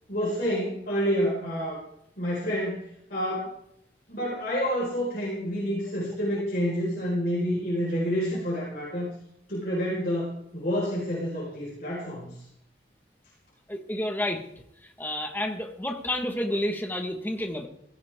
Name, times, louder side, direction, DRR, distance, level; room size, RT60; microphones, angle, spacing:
voice 1, 0.1-1.8 2.2-3.6 4.1-9.1 9.5-12.5, equal, 50° left, -6 dB, 4.9 m, -28 dB
voice 2, 13.7-14.4 14.8-17.7, left 1 dB, 10° left, 4 dB, 1.5 m, -30 dB
17.0 x 15.5 x 3.7 m, 0.74 s
head